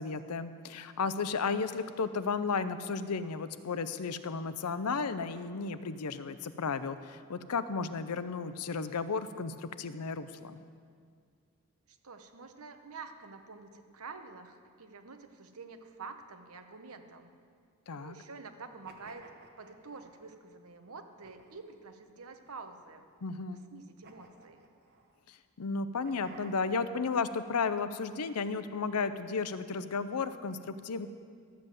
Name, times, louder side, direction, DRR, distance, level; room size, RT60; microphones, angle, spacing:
voice 1, 0.0-10.6 17.9-18.2 23.2-23.6 25.3-31.1, left 4 dB, 85° left, 12 dB, 0.6 m, -34 dB
voice 2, 11.9-17.3 17.9-19.3 19.6-23.0 23.7-24.6, right 4 dB, 70° right, 7 dB, 1.0 m, -48 dB
sound 1, 18.8-20.4 21.2-21.8 22.4-23.2 24.0-25.2 26.0-26.9, right 3 dB, 45° right, 1.2 m, -56 dB
12.5 x 7.7 x 7.5 m, 2.1 s
head